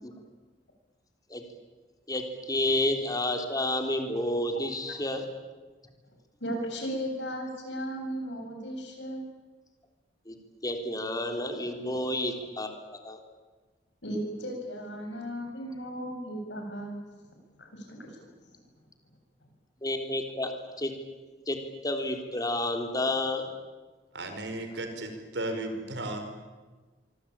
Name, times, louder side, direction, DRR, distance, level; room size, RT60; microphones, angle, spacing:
voice 1, 2.1-5.3 10.3-10.4 10.6-12.7 13.0-13.2 19.8-20.5 20.8-20.9 21.5-23.5, left 1 dB, 20° left, 4 dB, 3.6 m, -30 dB
voice 2, 6.4-9.2 14.0-17.0 17.6-18.2, equal, 90° left, 3 dB, 7.8 m, -35 dB
voice 3, 24.1-26.2, right 1 dB, 90° right, 6 dB, 5.0 m, -35 dB
25.5 x 24.0 x 8.9 m, 1.3 s
head